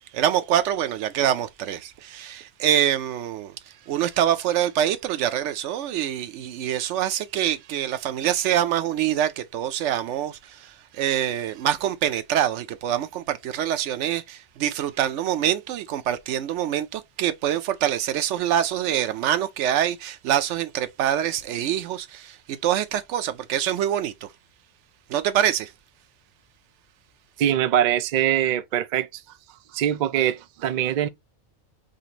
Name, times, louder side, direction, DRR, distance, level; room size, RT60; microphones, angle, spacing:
voice 1, 0.1-3.5 3.9-24.3 25.1-25.7, right 10 dB, 85° right, 0.9 m, -25 dB
voice 2, 27.4-29.2 29.7-31.1, right 11 dB, 60° right, 0.5 m, -23 dB
5.2 x 2.5 x 2.9 m
omnidirectional pair, 1.2 m